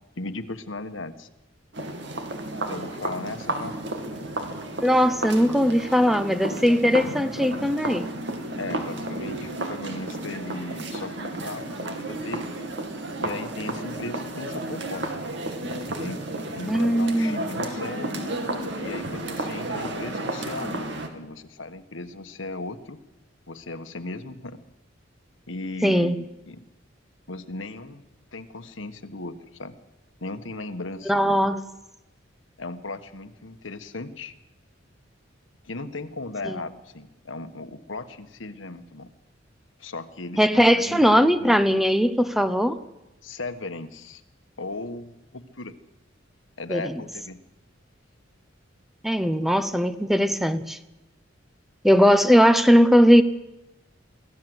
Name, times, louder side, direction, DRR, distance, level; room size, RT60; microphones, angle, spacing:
voice 1, 0.2-1.3 2.7-3.8 8.6-12.5 13.2-15.1 16.0-16.2 16.5-18.2 18.8-20.8 21.1-23.0 23.5-24.6 25.5-26.6 27.3-28.0 28.3-29.7 30.2-31.4 32.6-34.3 35.6-39.1 39.8-41.8 43.2-44.2 44.6-45.8 46.6-47.4, left 2 dB, 85° left, 1.5 m, -37 dB
sound 1, 1.7-21.1, right 1 dB, 65° right, 2.6 m, -32 dB
voice 2, 4.8-8.1 16.7-17.4 25.8-26.1 31.1-31.6 36.4-36.6 40.4-42.8 46.7-46.9 49.0-50.8 51.8-53.2, equal, ahead, 0.8 m, -19 dB
23.5 x 16.0 x 8.0 m
head